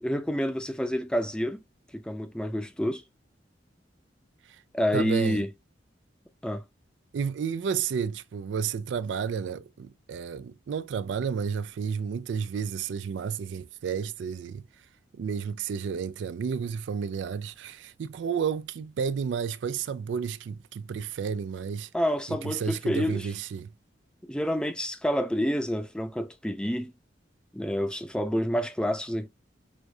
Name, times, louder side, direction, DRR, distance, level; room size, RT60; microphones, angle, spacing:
voice 1, 0.0-1.6 1.9-3.0 4.7-5.5 6.4-6.6 21.9-23.3 24.3-26.9 27.5-29.3, equal, 5° left, 0.5 m, -28 dB
voice 2, 4.9-5.4 7.1-14.6 15.1-21.9 22.3-23.7, right 6 dB, 70° right, 0.3 m, -31 dB
6.2 x 2.6 x 2.3 m
head